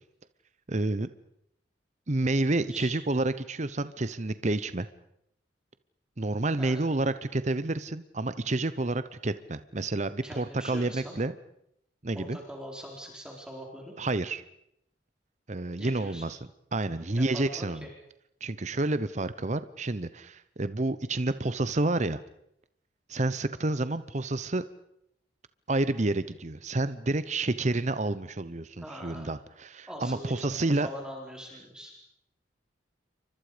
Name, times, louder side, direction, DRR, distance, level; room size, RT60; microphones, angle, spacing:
voice 1, 0.7-1.1 2.1-4.9 6.2-11.3 12.0-12.4 14.0-14.4 15.5-16.4 16.7-17.9 18.4-22.2 23.1-24.6 25.7-30.9, right 2 dB, 40° right, 13 dB, 0.8 m, -29 dB
voice 2, 10.2-11.2 12.1-13.9 15.8-16.2 17.1-17.9 28.8-29.3 29.9-31.9, equal, 5° right, -1 dB, 4.6 m, -42 dB
29.0 x 25.0 x 5.1 m, 0.76 s
head